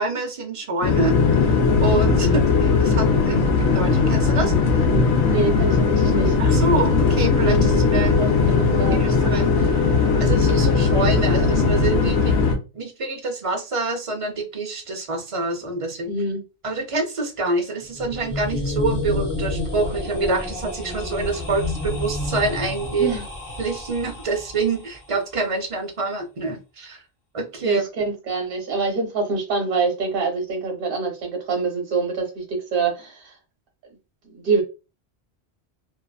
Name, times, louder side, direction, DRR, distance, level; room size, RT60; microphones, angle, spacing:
voice 1, 0.0-4.8 6.4-8.3 8.9-9.7 10.2-12.3 12.7-16.1 16.6-23.1 23.6-27.0 27.3-27.8, right 3 dB, 40° right, 4 dB, 0.5 m, -26 dB
sound 1, 0.8-12.5, left 4 dB, 85° left, 0.9 m, -18 dB
voice 2, 5.2-6.3 7.9-9.0 16.1-16.4 23.0-23.2 27.6-33.3 34.3-34.6, right 4 dB, 60° right, 2 dB, 1.0 m, -25 dB
sound 2, 17.8-24.8, left 2 dB, 25° left, 0.8 m, -29 dB
2.6 x 2.5 x 2.2 m, 0.30 s
omnidirectional pair, 1.1 m